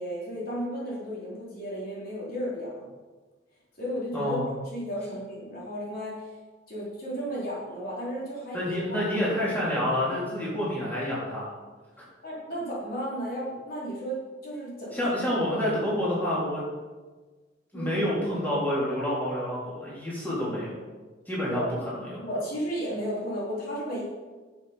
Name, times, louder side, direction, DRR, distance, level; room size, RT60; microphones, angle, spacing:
voice 1, 0.0-2.9 3.8-4.4 4.7-6.3 6.7-9.0 12.2-15.1 17.7-18.0 21.4-21.7 22.2-24.0, equal, 50° left, -6 dB, 3.6 m, -34 dB
voice 2, 4.1-4.4 8.5-11.5 12.0-12.1 14.9-16.6 17.7-20.7 21.3-21.6 22.0-22.2, left 1 dB, 10° left, -8 dB, 3.5 m, -28 dB
11.0 x 7.6 x 5.1 m, 1.3 s
head